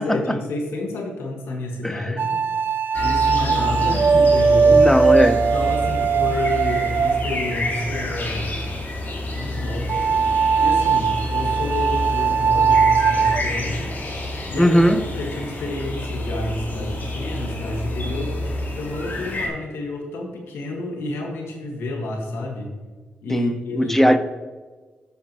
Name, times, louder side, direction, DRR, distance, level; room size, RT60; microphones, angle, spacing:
voice 1, 0.0-2.4 3.0-4.8 5.2-8.7 9.3-10.0 10.6-13.9 14.5-18.3 18.8-22.8 23.2-24.0, left 2 dB, 85° left, 1.6 m, -30 dB
voice 2, 1.8-2.1 4.7-5.5 14.6-15.0 23.3-24.2, equal, 5° left, 0.8 m, -18 dB
sound 1, 2.2-8.0 9.9-13.4, right 5 dB, 60° right, 0.3 m, -19 dB
sound 2, 2.9-19.5, left 1 dB, 55° left, 2.5 m, -28 dB
14.0 x 5.7 x 3.0 m
cardioid pair, 60°, 4 cm